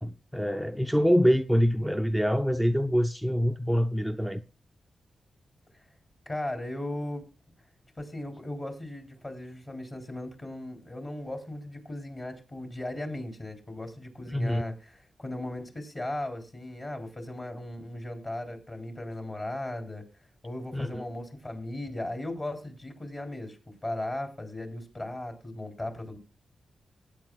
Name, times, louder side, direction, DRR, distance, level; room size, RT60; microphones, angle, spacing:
voice 1, 0.0-4.4 14.3-14.6 20.7-21.0, equal, ahead, 0.4 m, -25 dB
voice 2, 6.2-7.3 8.0-14.9 15.2-20.0 20.4-26.2, left 1 dB, 35° left, 3.2 m, -37 dB
18.5 x 9.0 x 2.3 m
cardioid pair, 80°, 0 cm